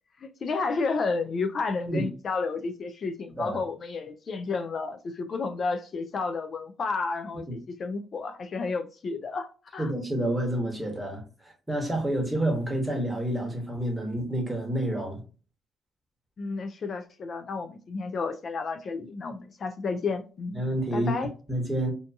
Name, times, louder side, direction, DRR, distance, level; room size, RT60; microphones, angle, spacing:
voice 1, 0.2-9.9 16.4-20.6 20.9-21.3, left 4 dB, 50° left, 0.3 m, -31 dB
voice 2, 9.8-15.2 20.5-21.1 21.5-21.9, right 1 dB, 10° right, 1.1 m, -29 dB
2.6 x 2.6 x 2.3 m
cardioid pair, 90°, 0 cm